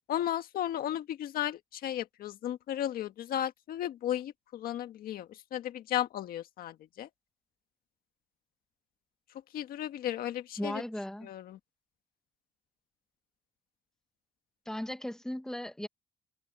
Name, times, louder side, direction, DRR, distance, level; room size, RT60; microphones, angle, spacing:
voice 1, 0.1-7.1 9.5-10.8 11.2-11.6, left 11 dB, 85° left, 1.6 m, -34 dB
voice 2, 10.6-11.3 14.7-15.9, left 1 dB, 5° left, 1.8 m, -37 dB
cardioid pair, 140°, 15 cm